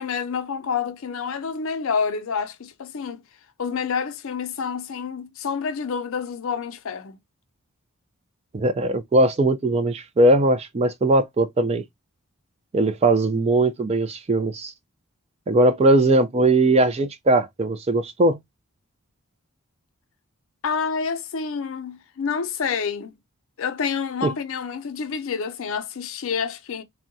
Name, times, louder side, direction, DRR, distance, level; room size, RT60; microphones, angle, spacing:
voice 1, 0.0-3.2 3.6-7.2 20.6-23.2 23.6-26.8, left 6 dB, 60° left, 0.5 m, -28 dB
voice 2, 8.5-11.8 12.7-14.7 15.5-18.4 24.2-24.3, right 2 dB, 30° right, 0.3 m, -19 dB
3.5 x 2.2 x 2.6 m
head